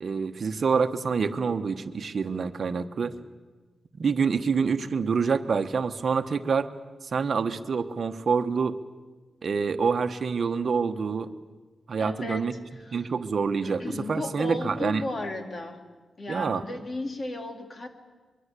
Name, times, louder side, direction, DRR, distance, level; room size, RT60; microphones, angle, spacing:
voice 1, 0.0-3.1 4.0-6.7 7.0-8.8 9.4-11.3 11.9-12.5 12.9-13.8 14.1-15.0 16.3-16.6, right 5 dB, 50° right, 8 dB, 1.2 m, -26 dB
voice 2, 12.0-12.5 12.8-13.1 13.6-15.8 16.2-17.9, left 2 dB, 40° left, 6 dB, 2.4 m, -35 dB
25.0 x 22.5 x 8.4 m, 1.3 s
wide cardioid pair, 140°, 0 cm